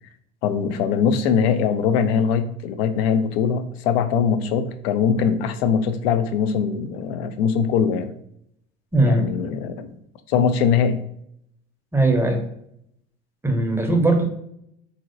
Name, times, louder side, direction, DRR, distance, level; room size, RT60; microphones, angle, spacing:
voice 1, 0.4-8.1 9.1-9.9 10.3-11.0, left 7 dB, 80° left, 9 dB, 0.5 m, -21 dB
voice 2, 8.9-9.3 11.9-12.4 13.4-14.2, right 2 dB, 10° right, 3 dB, 0.6 m, -19 dB
3.0 x 2.7 x 2.5 m, 0.74 s
hypercardioid pair, 80°, 30 cm